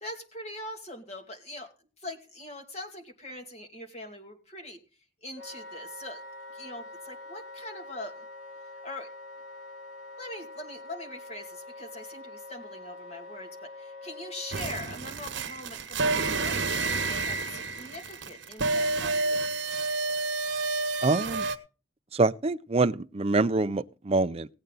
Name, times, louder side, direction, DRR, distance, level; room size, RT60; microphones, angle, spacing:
voice 1, 0.0-4.8 5.2-6.2 6.5-8.2 8.8-9.1 10.2-19.5, left 1 dB, 35° left, 2.4 m, -42 dB
Wind instrument woodwind instrument, 5.4-14.7, left 2 dB, 80° left, 3.1 m, -45 dB
sound 1, 14.5-21.6, right 3 dB, 70° right, 1.3 m, -29 dB
voice 2, 21.0-21.5 22.1-24.5, right 3 dB, 30° right, 0.5 m, -25 dB
17.5 x 8.7 x 3.9 m
head